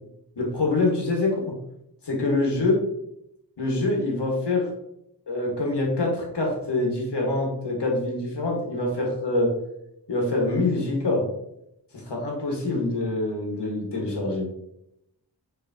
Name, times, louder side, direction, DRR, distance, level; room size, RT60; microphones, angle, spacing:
voice 1, 0.4-1.6 2.0-2.8 3.6-4.7 5.3-9.5 10.1-11.3 11.9-14.5, left 2 dB, 70° left, -1 dB, 1.4 m, -25 dB
5.9 x 3.1 x 2.7 m, 0.81 s
wide cardioid pair, 65°, 43 cm